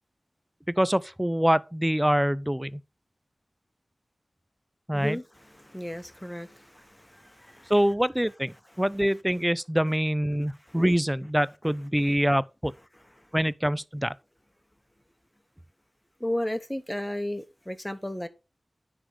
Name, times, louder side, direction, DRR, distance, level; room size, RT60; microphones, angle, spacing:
voice 1, 0.8-2.8 4.9-5.2 7.7-8.5 8.8-12.7 13.3-14.1, equal, 10° right, 0.4 m, -25 dB
voice 2, 4.9-7.7 10.7-10.8 16.2-18.3, left 1 dB, 10° left, 1.1 m, -34 dB
9.9 x 3.7 x 5.0 m
wide cardioid pair, 55°, 0 cm